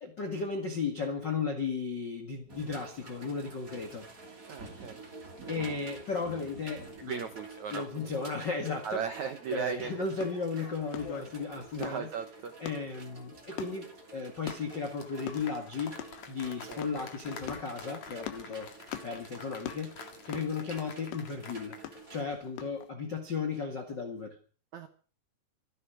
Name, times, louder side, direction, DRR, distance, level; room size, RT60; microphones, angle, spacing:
voice 1, 0.0-4.1 5.5-7.3 7.7-9.0 9.5-12.1 12.6-18.7 19.0-19.9 20.2-21.8 22.1-24.4, left 5 dB, 90° left, 5 dB, 0.9 m, -35 dB
sound 1, 2.5-22.2, right 3 dB, 25° right, 2.5 m, -49 dB
voice 2, 4.5-5.0 7.1-7.8 8.8-10.0 10.6-10.7 11.7-12.5 16.7-16.9 24.7-24.9, right 7 dB, 80° right, 8 dB, 1.6 m, -36 dB
sound 2, 10.2-22.9, left 12 dB, 70° left, 3.1 m, -45 dB
sound 3, 14.5-21.9 22.1-22.4, left 6 dB, 45° left, 2.7 m, -48 dB
26.0 x 10.5 x 5.1 m, 0.41 s
omnidirectional pair, 5.3 m